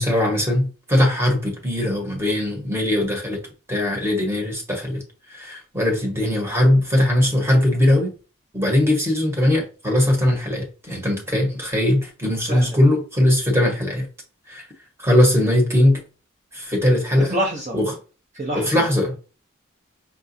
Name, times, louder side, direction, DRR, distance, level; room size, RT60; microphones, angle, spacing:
voice 1, 0.0-3.4 3.7-5.0 5.3-8.1 8.5-14.1 14.5-14.6 15.0-16.0 16.5-17.4 17.7-17.9 18.5-19.1, left 1 dB, 10° right, 1 dB, 1.0 m, -20 dB
voice 2, 17.2-17.7 18.3-18.8, equal, 35° right, -1 dB, 0.6 m, -26 dB
5.8 x 2.2 x 2.6 m, 0.34 s
head